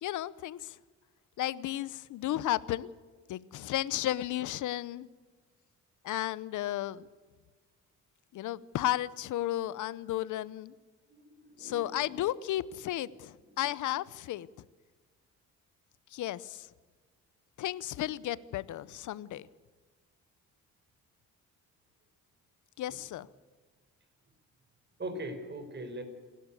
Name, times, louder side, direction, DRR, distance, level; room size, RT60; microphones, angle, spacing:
voice 1, 0.0-0.8 1.4-2.9 3.3-5.1 6.0-7.1 8.3-10.7 11.6-14.5 16.1-16.7 17.6-19.5 22.8-23.3, left 14 dB, 75° left, 19 dB, 0.9 m, -33 dB
voice 2, 11.1-12.2 22.9-23.0 25.0-26.0, right 1 dB, 35° right, 8 dB, 4.9 m, -41 dB
28.5 x 12.5 x 8.4 m, 1.4 s
cardioid pair, 90°, 30 cm